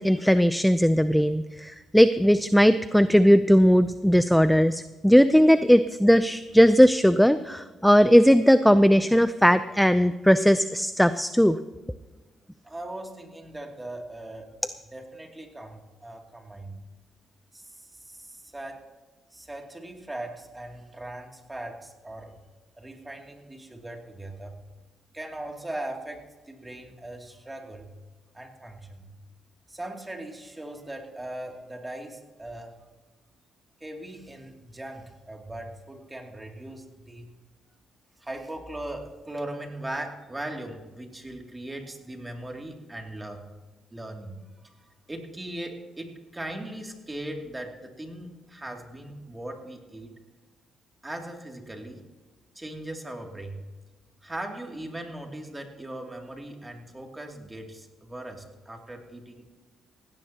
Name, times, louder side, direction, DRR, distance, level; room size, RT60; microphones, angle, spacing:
voice 1, 0.0-11.6, equal, ahead, 12 dB, 0.5 m, -18 dB
voice 2, 12.6-14.5 14.9-16.8 17.5-18.8 19.3-22.4 22.8-24.6 25.1-27.9 28.3-29.1 29.7-32.8 33.8-37.3 38.2-43.5 43.9-44.4 44.6-44.8 45.1-50.1 51.0-52.0 52.5-53.7 54.2-59.5, right 1 dB, 15° right, 2 dB, 2.6 m, -39 dB
17.5 x 16.5 x 2.9 m, 1.3 s
cardioid pair, 90°, 0 cm